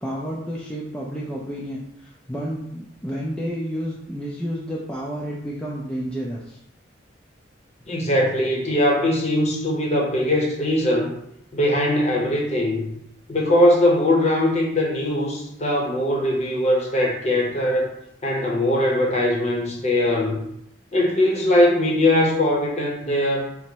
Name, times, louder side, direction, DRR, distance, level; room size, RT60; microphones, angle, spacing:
voice 1, 0.0-6.6, equal, 5° left, -5 dB, 0.3 m, -30 dB
voice 2, 7.9-11.1 11.5-12.9 13.3-17.9 18.2-20.4 20.9-23.5, left 1 dB, 35° left, -1 dB, 0.7 m, -21 dB
3.9 x 2.1 x 4.4 m, 0.77 s
head